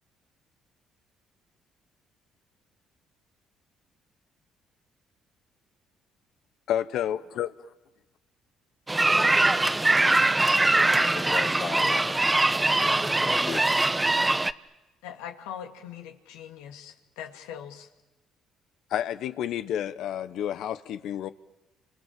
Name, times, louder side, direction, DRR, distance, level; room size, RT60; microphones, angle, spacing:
voice 1, 6.7-7.5 18.9-21.3, left 10 dB, 70° left, 1.1 m, -30 dB
sound 1, 8.9-14.5, right 2 dB, 15° right, 1.0 m, -22 dB
voice 2, 11.1-13.6, left 6 dB, 45° left, 1.0 m, -37 dB
voice 3, 15.0-17.9, left 9 dB, 85° left, 2.3 m, -41 dB
30.0 x 26.0 x 7.6 m
supercardioid pair, 60°, 0 cm